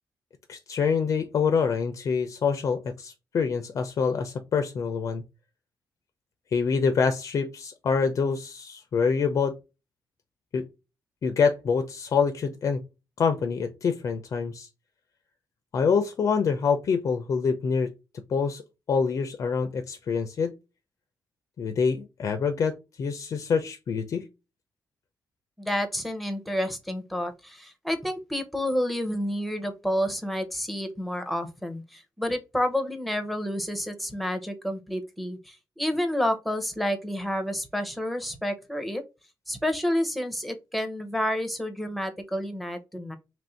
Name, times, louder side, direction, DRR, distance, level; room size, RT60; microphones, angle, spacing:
voice 1, 0.5-5.2 6.5-9.5 10.5-10.6 11.2-12.8 13.2-14.7 15.7-17.9 18.3-18.6 18.9-20.5 21.6-24.3, left 5 dB, 55° left, 0.4 m, -26 dB
voice 2, 25.6-39.0 39.5-43.2, equal, ahead, 0.7 m, -29 dB
3.0 x 2.6 x 4.3 m
cardioid pair, 120°, 7 cm